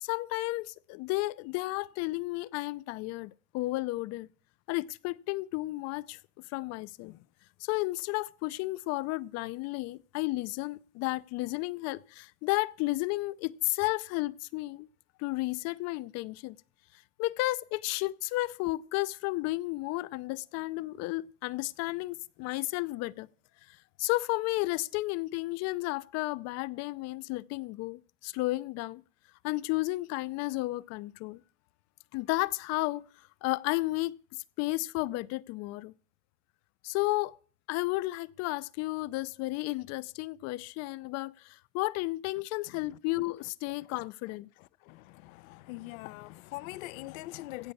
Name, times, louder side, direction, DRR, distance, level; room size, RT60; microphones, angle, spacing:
voice 1, 0.0-4.3 4.7-6.2 6.5-7.2 7.6-14.9 15.2-16.6 17.2-23.3 24.0-29.0 29.4-31.4 32.1-33.0 33.4-34.1 34.6-35.9 36.8-37.3 37.7-44.5, left 20 dB, 40° left, 0.5 m, -32 dB
voice 2, 44.9-47.7, left 19 dB, 75° left, 0.7 m, -42 dB
16.0 x 5.6 x 8.4 m
supercardioid pair, 145°, 41 cm